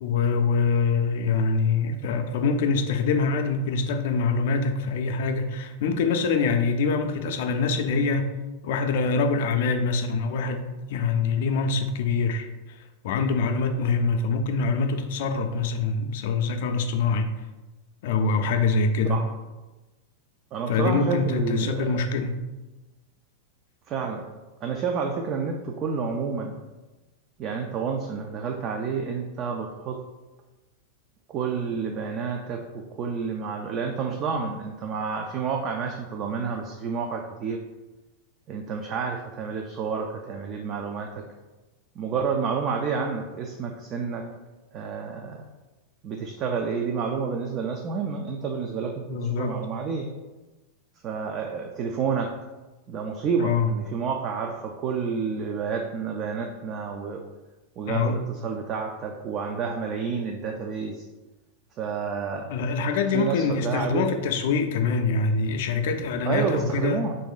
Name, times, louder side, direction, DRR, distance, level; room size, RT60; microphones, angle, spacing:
voice 1, 0.0-8.4 8.6-12.5 13.0-17.3 18.0-19.2 20.7-22.4 49.1-49.6 53.4-53.7 57.9-58.2 62.5-67.1, left 4 dB, 65° left, 6 dB, 0.4 m, -24 dB
voice 2, 20.5-22.0 23.9-24.3 24.6-26.6 27.4-30.0 31.3-37.6 38.5-41.2 42.0-44.2 44.7-45.4 46.0-50.1 51.0-52.3 52.9-57.2 57.8-61.0 61.8-62.5 63.1-64.1 66.3-67.2, right 5 dB, 30° right, 2 dB, 0.3 m, -29 dB
2.9 x 2.6 x 3.9 m, 1.1 s
supercardioid pair, 150°, 0 cm